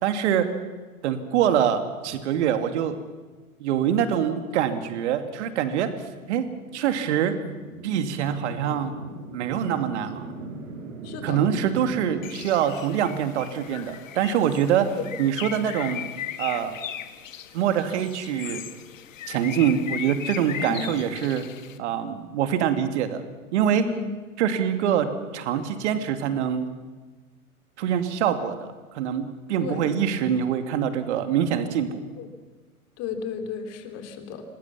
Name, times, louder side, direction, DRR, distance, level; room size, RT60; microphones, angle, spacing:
voice 1, 0.0-0.5 1.0-2.9 3.6-5.9 6.3-6.5 6.7-7.4 7.8-8.9 9.3-10.2 11.2-14.9 15.2-16.0 16.4-16.8 17.5-18.6 19.3-21.4 21.8-23.2 23.5-23.9 24.4-25.1 25.3-26.7 27.8-28.7 28.9-32.0, right 9 dB, 50° right, 8 dB, 2.6 m, -24 dB
sound 1, 5.4-12.3, right 2 dB, 65° right, 5.1 m, -41 dB
voice 2, 11.0-11.4 14.9-15.1 20.7-20.8 23.8-24.1 29.6-29.8 32.2-32.3 33.0-34.4, left 7 dB, 35° left, 7 dB, 3.3 m, -34 dB
Bird, 12.2-21.8, left 10 dB, 60° left, 1.8 m, -37 dB
27.0 x 20.0 x 7.3 m, 1.3 s
figure-of-eight pair, 105°, 44 cm